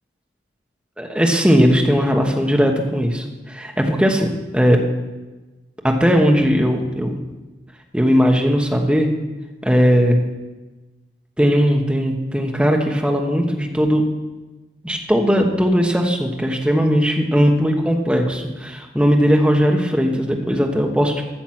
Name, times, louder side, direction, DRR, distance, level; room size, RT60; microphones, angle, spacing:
voice 1, 1.0-4.8 5.8-7.2 7.9-9.1 9.6-10.2 11.4-14.0 14.8-21.2, equal, 5° right, 2 dB, 1.3 m, -18 dB
13.5 x 7.1 x 6.1 m, 1.1 s
head